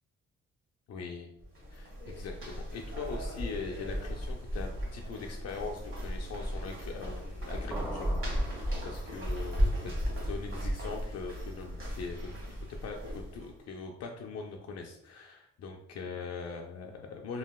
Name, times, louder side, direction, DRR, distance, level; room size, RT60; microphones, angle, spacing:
voice 1, 0.9-1.3 1.7-8.1 8.4-12.3 12.7-17.4, left 4 dB, 55° left, 1 dB, 0.4 m, -41 dB
sound 1, 1.4-13.5, equal, 45° right, 1.3 m, -35 dB
sound 2, 7.7-9.4, right 1 dB, 5° left, 1.1 m, -42 dB
2.9 x 2.7 x 2.3 m, 0.80 s
cardioid pair, 90°, 30 cm